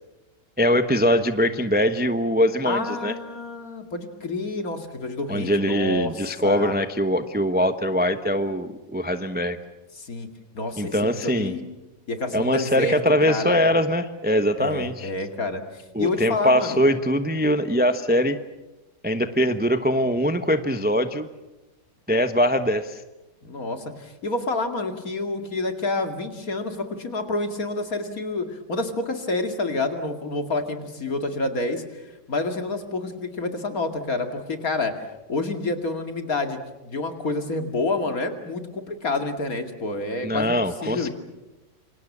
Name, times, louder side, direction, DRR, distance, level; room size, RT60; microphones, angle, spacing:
voice 1, 0.6-3.1 5.3-9.6 10.8-11.5 12.3-15.1 15.9-18.4 19.0-21.3 22.1-23.0 40.2-41.1, equal, 10° right, 9 dB, 0.7 m, -22 dB
voice 2, 2.7-6.8 10.0-10.3 10.5-11.0 11.2-11.6 12.1-13.0 13.2-13.6 14.6-16.8 23.4-35.0 35.3-40.5 40.8-41.1, left 2 dB, 55° left, 6 dB, 2.7 m, -28 dB
28.0 x 25.0 x 7.4 m, 1.1 s
omnidirectional pair, 1.9 m